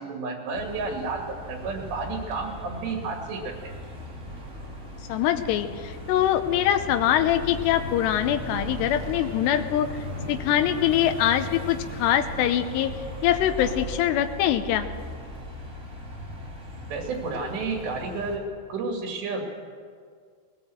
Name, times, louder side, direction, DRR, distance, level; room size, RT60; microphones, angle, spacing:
voice 1, 0.0-3.7 16.9-19.5, right 3 dB, 85° right, 2 dB, 4.5 m, -31 dB
sound 1, 0.5-18.4, equal, 20° right, 3.8 m, -38 dB
voice 2, 5.1-9.9 10.3-12.9 13.2-14.9, left 11 dB, 85° left, 7 dB, 3.0 m, -23 dB
sound 2, 6.5-11.6, right 2 dB, 60° right, 3.6 m, -43 dB
20.5 x 18.0 x 7.8 m, 2.1 s
omnidirectional pair, 4.8 m